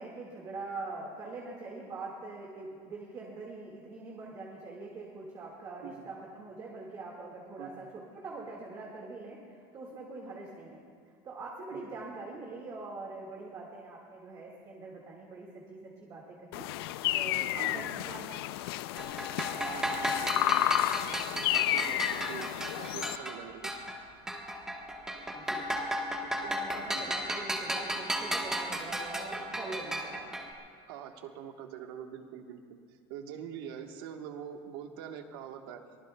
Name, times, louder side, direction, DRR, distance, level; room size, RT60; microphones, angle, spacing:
voice 1, 0.0-10.8 11.2-18.3 25.0-25.8 26.4-30.4, right 3 dB, 30° right, -2 dB, 1.9 m, -43 dB
sound 1, 16.5-23.2, left 14 dB, 85° left, 0.4 m, -31 dB
sound 2, 19.0-24.0 24.3-30.5, equal, 5° right, 1.3 m, -35 dB
voice 2, 19.6-21.2 21.5-22.5 22.8-23.7 26.2-26.5 26.9-27.3 30.9-32.8 33.1-35.8, right 8 dB, 75° right, 5 dB, 1.4 m, -44 dB
23.5 x 19.0 x 2.3 m, 2.1 s
cardioid pair, 165°, 12 cm